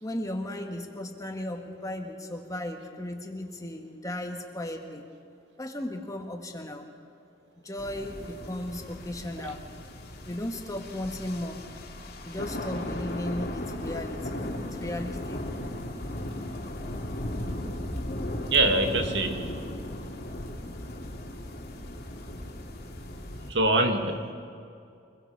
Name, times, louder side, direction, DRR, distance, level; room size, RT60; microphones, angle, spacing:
voice 1, 0.0-5.1 5.6-6.9 7.6-9.6 10.3-11.6 12.2-15.4, left 1 dB, 20° left, 3 dB, 1.7 m, -36 dB
sound 1, 7.8-23.5, left 1 dB, 60° left, 2.6 m, -36 dB
voice 2, 18.5-19.6 23.5-24.3, right 2 dB, 70° right, 4 dB, 2.1 m, -24 dB
25.0 x 22.0 x 4.8 m, 2.4 s
head